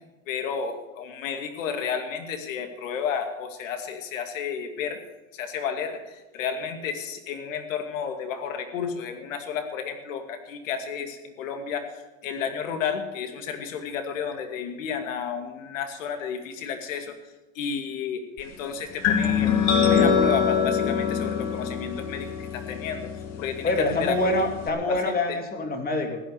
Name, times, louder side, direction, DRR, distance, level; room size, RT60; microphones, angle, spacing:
voice 1, 0.3-5.0 5.3-17.2 17.5-19.5 19.8-23.1 23.4-24.3 24.9-25.0 25.3-25.4, left 7 dB, 75° left, 6 dB, 2.4 m, -32 dB
sound 1, 19.0-24.7, left 6 dB, 40° left, 2.2 m, -24 dB
voice 2, 23.6-26.2, left 2 dB, 25° left, 3 dB, 2.9 m, -25 dB
15.5 x 10.5 x 6.8 m, 1.1 s
hypercardioid pair, 110°, 39 cm